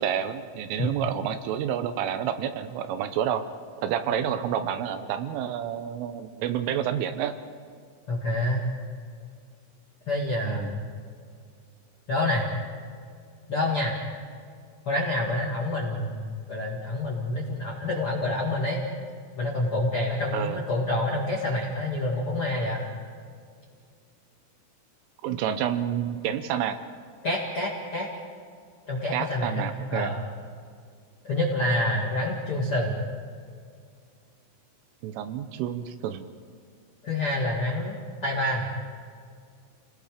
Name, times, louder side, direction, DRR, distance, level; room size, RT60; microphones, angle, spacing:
voice 1, 0.0-3.4 3.8-7.3 10.4-10.7 20.3-20.6 25.2-26.8 29.1-30.1 35.0-36.3, right 9 dB, 80° right, 9 dB, 3.2 m, -29 dB
voice 2, 8.1-8.7 10.1-10.8 12.1-12.4 13.5-13.9 14.8-18.8 19.4-22.8 27.2-28.1 28.9-30.2 31.2-33.0 37.0-38.7, left 1 dB, 55° left, -4 dB, 1.5 m, -27 dB
30.0 x 19.0 x 5.1 m, 2.2 s
omnidirectional pair, 6.0 m